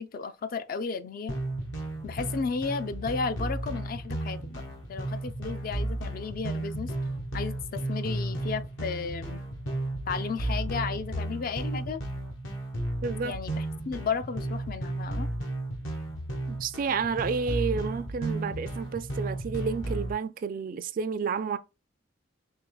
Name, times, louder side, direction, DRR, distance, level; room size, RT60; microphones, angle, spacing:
voice 1, 0.0-1.3 2.0-4.6 4.9-6.9 7.3-9.4 10.1-12.0 13.2-15.3, left 5 dB, 50° left, 0.4 m, -33 dB
sound 1, 1.3-20.1, right 1 dB, 80° left, 1.2 m, -33 dB
voice 2, 13.0-13.4 16.5-21.6, right 5 dB, 45° right, 0.3 m, -30 dB
4.6 x 3.6 x 2.2 m
head